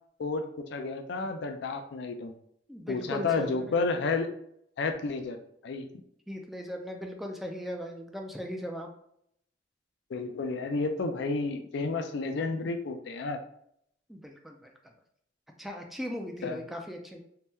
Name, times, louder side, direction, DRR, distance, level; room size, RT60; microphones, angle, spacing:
voice 1, 0.2-2.4 2.9-4.3 4.8-5.9 10.1-13.4 16.4-16.6, left 3 dB, 65° left, 6 dB, 0.4 m, -31 dB
voice 2, 2.7-3.8 6.3-8.9 14.1-14.7 15.6-17.2, equal, ahead, 2 dB, 0.3 m, -38 dB
2.8 x 2.1 x 3.5 m, 0.72 s
head